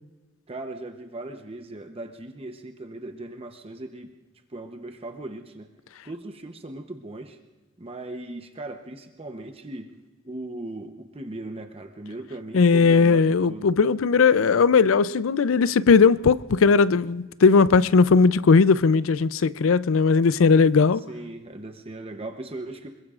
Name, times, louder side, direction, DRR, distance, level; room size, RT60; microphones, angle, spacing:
voice 1, 0.5-4.2 4.5-5.7 6.0-7.4 7.8-9.9 10.2-13.7 21.0-23.0, right 2 dB, 30° right, 0.8 m, -38 dB
voice 2, 12.5-21.0, left 5 dB, 80° left, 0.5 m, -18 dB
26.0 x 22.0 x 2.5 m
head